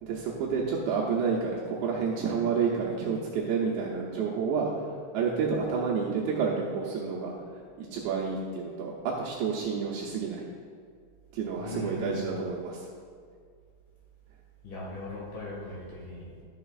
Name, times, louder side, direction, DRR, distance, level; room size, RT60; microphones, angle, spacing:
voice 1, 0.0-4.7 5.1-7.3 7.8-10.5 11.3-12.8, right 5 dB, 75° right, -4 dB, 2.8 m, -29 dB
voice 2, 11.6-12.3 14.6-16.4, left 2 dB, 60° left, -6 dB, 3.2 m, -39 dB
12.5 x 6.8 x 2.4 m, 2.1 s
omnidirectional pair, 5.6 m